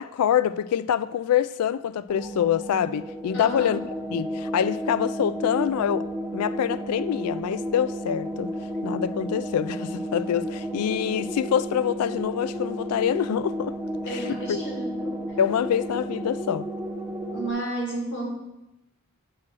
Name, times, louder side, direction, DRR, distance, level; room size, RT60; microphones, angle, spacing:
voice 1, 0.0-6.1 6.3-8.5 8.8-13.8 14.1-14.6 15.4-16.7, left 9 dB, 85° left, 0.3 m, -25 dB
sound 1, 2.1-17.5, equal, 10° right, 0.7 m, -32 dB
voice 2, 3.3-3.7 14.1-15.2 17.3-18.3, right 1 dB, 55° left, 2.0 m, -32 dB
8.5 x 3.2 x 6.0 m
head